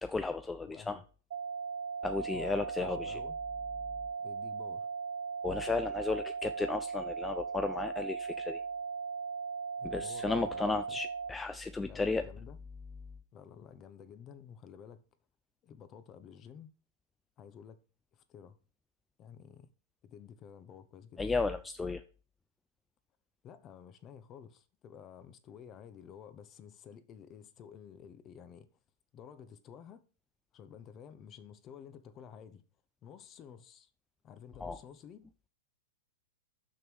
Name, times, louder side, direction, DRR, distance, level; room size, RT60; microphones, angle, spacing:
voice 1, 0.0-1.0 2.0-3.2 5.4-8.6 9.8-12.3 21.2-22.0 34.6-34.8, left 3 dB, 10° left, 0.6 m, -34 dB
voice 2, 0.6-1.0 2.3-3.4 4.2-4.9 9.8-11.0 11.8-12.6 13.3-15.0 15.6-16.7 17.4-17.8 18.1-18.6 19.2-19.7 20.0-21.2 23.4-28.7 29.1-30.0 30.5-32.6 33.0-33.9 34.2-35.2, left 8 dB, 30° left, 1.1 m, -52 dB
sound 1, 1.3-11.3, right 5 dB, 70° right, 0.9 m, -38 dB
6.6 x 6.1 x 7.4 m
hypercardioid pair, 110°, 0 cm